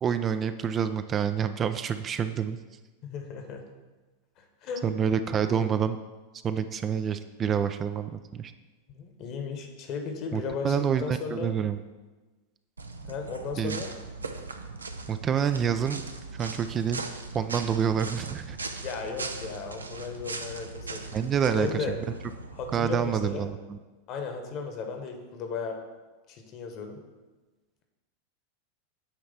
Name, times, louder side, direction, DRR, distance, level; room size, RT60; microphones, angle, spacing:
voice 1, 0.0-2.6 4.8-6.0 6.4-8.5 10.3-11.8 13.6-13.8 15.1-16.0 16.3-17.1 17.3-18.6 21.1-22.0 22.7-23.8, right 7 dB, 30° right, 10 dB, 0.4 m, -27 dB
voice 2, 3.0-3.6 4.4-4.8 5.3-5.7 8.9-11.5 13.0-13.9 18.8-21.0 21.5-22.0 22.5-23.5 24.1-25.8 26.3-27.0, left 5 dB, 45° left, 4 dB, 1.2 m, -35 dB
sound 1, 12.8-23.3, right 3 dB, 85° right, 0.6 m, -39 dB
8.8 x 3.2 x 5.6 m, 1.2 s
figure-of-eight pair, 90°, 0 cm